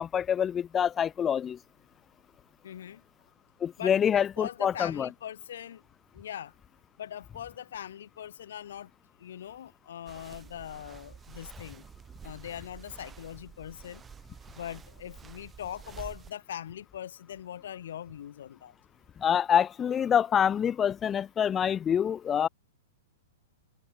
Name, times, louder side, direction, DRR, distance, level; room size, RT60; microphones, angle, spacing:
voice 1, 0.0-1.6 3.6-5.1 19.2-22.5, left 8 dB, 20° left, 0.4 m, -26 dB
voice 2, 2.6-3.0 3.8-5.8 6.1-6.5 7.0-8.9 9.2-11.9 12.2-14.0 14.5-18.7, left 10 dB, 60° left, 2.1 m, -41 dB
sound 1, 10.1-16.3, right 7 dB, 15° right, 1.3 m, -49 dB
figure-of-eight pair, 105°, 0 cm